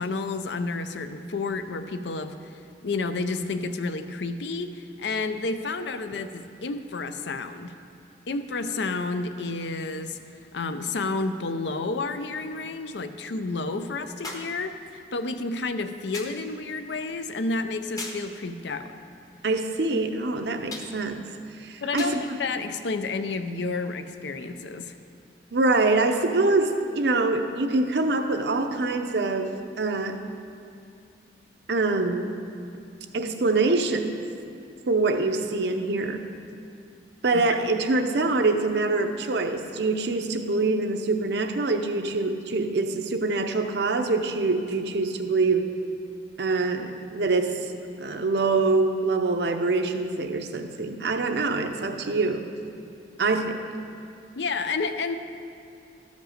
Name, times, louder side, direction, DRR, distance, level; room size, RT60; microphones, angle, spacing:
voice 1, 0.0-7.7 8.3-10.2 10.5-18.9 21.8-24.9 37.6-37.7 54.4-55.2, left 3 dB, 75° left, 9 dB, 0.5 m, -30 dB
sound 1, 14.2-14.6 16.1-16.5 18.0-18.3 20.7-21.0 22.0-22.3 23.3-23.4, left 2 dB, 20° left, 0.8 m, -37 dB
voice 2, 19.4-21.3 21.6-22.4 25.5-30.2 31.7-32.4 33.1-34.2 34.9-36.3 37.2-45.7 46.4-47.6 48.0-52.5 53.2-53.6, right 3 dB, 70° right, 6 dB, 0.7 m, -25 dB
13.0 x 5.2 x 6.5 m, 2.5 s
head